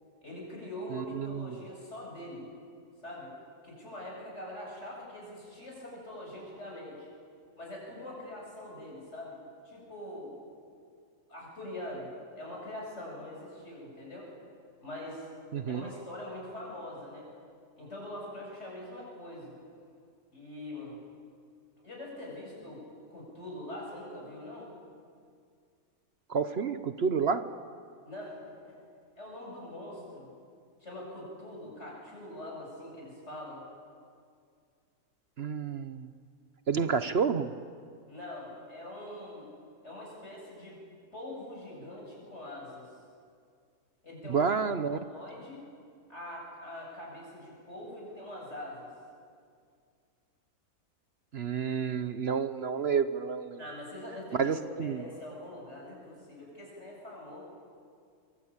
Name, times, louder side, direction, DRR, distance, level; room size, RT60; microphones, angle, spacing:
voice 1, 0.2-2.5 3.0-3.3 3.6-7.1 7.6-9.4 9.6-10.3 11.3-12.1 12.4-14.3 14.8-15.2 15.7-17.2 17.8-19.5 20.3-21.0 21.8-22.8 23.1-24.7 28.0-28.8 29.2-30.3 30.8-33.6 38.1-39.5 39.8-40.8 41.1-42.9 44.0-44.6 45.1-45.6 46.1-48.9 53.6-57.4, left 1 dB, 50° left, -3 dB, 8.3 m, -43 dB
voice 2, 0.9-1.6 15.5-15.8 26.3-27.5 35.4-36.1 36.7-37.5 44.3-45.0 51.3-53.6 54.3-55.0, right 6 dB, 50° right, 11 dB, 0.9 m, -30 dB
24.0 x 23.5 x 8.8 m, 2.2 s
omnidirectional pair, 1.5 m